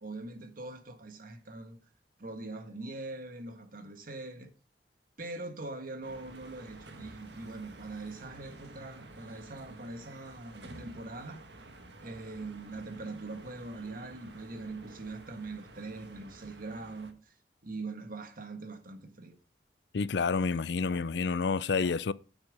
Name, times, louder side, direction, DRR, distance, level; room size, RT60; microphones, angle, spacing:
voice 1, 0.0-1.8 2.2-4.5 5.2-11.5 12.0-17.3 17.6-19.4, right 2 dB, 55° right, 1.6 m, -42 dB
sound 1, 6.0-17.1, right 2 dB, 75° right, 1.6 m, -51 dB
voice 2, 19.9-22.1, left 4 dB, 70° left, 0.5 m, -29 dB
9.7 x 9.0 x 4.9 m
head